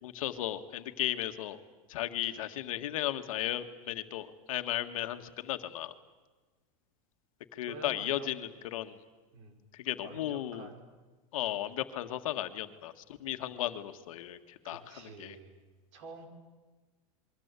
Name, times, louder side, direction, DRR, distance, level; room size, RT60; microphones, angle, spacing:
voice 1, 0.0-1.6 1.9-5.9 7.5-9.0 9.9-10.7 11.3-12.9 13.2-14.4 14.7-14.8 15.2-15.4, left 13 dB, 75° left, 9 dB, 1.8 m, -35 dB
voice 2, 7.7-8.3 9.3-9.6 10.0-10.9 14.6-15.6 15.9-16.3, right 3 dB, 55° right, 6 dB, 5.5 m, -48 dB
28.5 x 22.5 x 8.3 m, 1.3 s
supercardioid pair, 175°, 18 cm